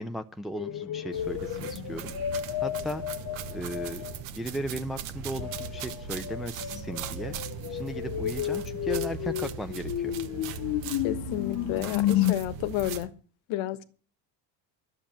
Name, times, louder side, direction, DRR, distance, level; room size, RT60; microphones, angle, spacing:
voice 1, 0.0-3.0 3.5-4.0 4.3-7.3 7.7-10.1, equal, ahead, 0.6 m, -36 dB
sound 1, 0.5-4.2 5.4-12.3, left 12 dB, 45° left, 0.9 m, -32 dB
sound 2, 1.1-13.1, right 7 dB, 65° right, 1.5 m, -39 dB
voice 2, 11.0-13.1 13.5-13.8, left 13 dB, 70° left, 1.4 m, -31 dB
11.5 x 7.3 x 8.8 m
supercardioid pair, 100°, 49 cm